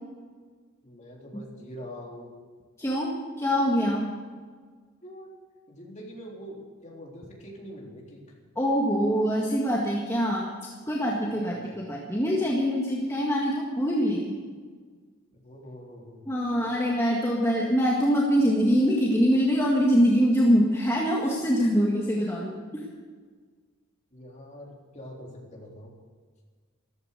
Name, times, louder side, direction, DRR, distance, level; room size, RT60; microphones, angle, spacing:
voice 1, 0.8-2.3 5.0-5.3 5.7-8.2 11.3-11.8 15.3-16.3 24.1-25.9, equal, 35° left, -2 dB, 3.7 m, -44 dB
voice 2, 2.8-4.1 8.6-10.5 10.9-14.4 16.3-22.6, equal, 15° left, -3 dB, 1.8 m, -24 dB
14.0 x 14.0 x 6.8 m, 1.5 s
head